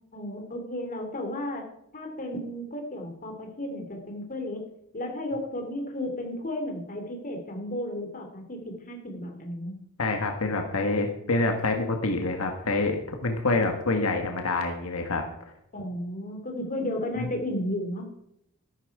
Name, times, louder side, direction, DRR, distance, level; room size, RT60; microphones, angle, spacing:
voice 1, 0.1-1.6 1.9-4.6 4.9-9.8 15.7-18.0, left 1 dB, 40° left, 3 dB, 3.0 m, -33 dB
voice 2, 10.0-15.2 17.2-17.3, left 2 dB, 80° left, 4 dB, 1.6 m, -26 dB
13.0 x 12.0 x 4.8 m, 0.77 s
head